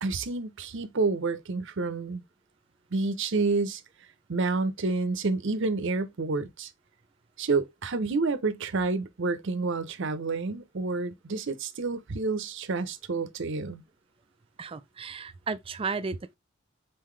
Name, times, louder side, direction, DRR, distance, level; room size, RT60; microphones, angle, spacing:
voice 1, 0.0-2.2 2.9-3.8 4.3-6.7 7.4-13.8, right 3 dB, 60° right, 0.7 m, -29 dB
voice 2, 14.6-16.3, right 4 dB, 25° right, 0.4 m, -34 dB
4.1 x 3.8 x 3.1 m
head